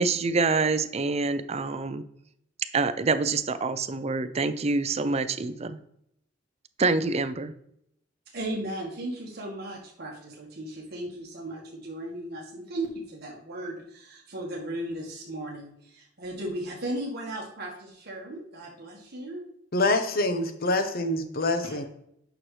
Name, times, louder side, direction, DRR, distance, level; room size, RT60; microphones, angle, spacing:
voice 1, 0.0-2.0 2.7-5.8 6.8-7.5, right 3 dB, 35° right, 11 dB, 0.5 m, -26 dB
voice 2, 8.3-19.5 21.6-21.8, right 1 dB, 55° right, -3 dB, 1.5 m, -36 dB
voice 3, 19.7-21.9, left 2 dB, 50° left, 8 dB, 0.9 m, -25 dB
9.0 x 6.1 x 3.2 m, 0.75 s
head